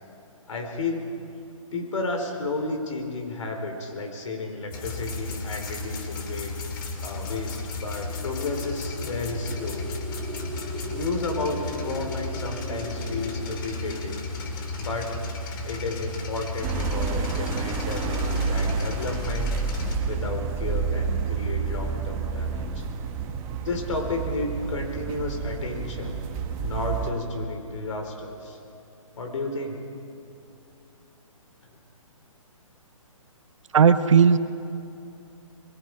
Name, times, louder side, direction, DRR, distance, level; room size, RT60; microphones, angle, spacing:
voice 1, 0.5-1.1 1.7-6.5 7.0-9.9 10.8-14.2 14.8-15.2 15.6-19.6 20.0-22.9 23.6-26.2 26.6-28.6 29.2-29.8, left 2 dB, 65° left, 3 dB, 4.5 m, -32 dB
sound 1, 4.7-20.0, left 3 dB, 40° left, 2.6 m, -34 dB
sound 2, 7.7-16.1, equal, 20° left, 4.3 m, -40 dB
sound 3, 16.6-27.1, right 5 dB, 15° right, 1.0 m, -29 dB
voice 2, 33.7-34.4, right 6 dB, 65° right, 10 dB, 1.1 m, -16 dB
27.0 x 22.0 x 5.0 m, 2.6 s
hypercardioid pair, 160°, 18 cm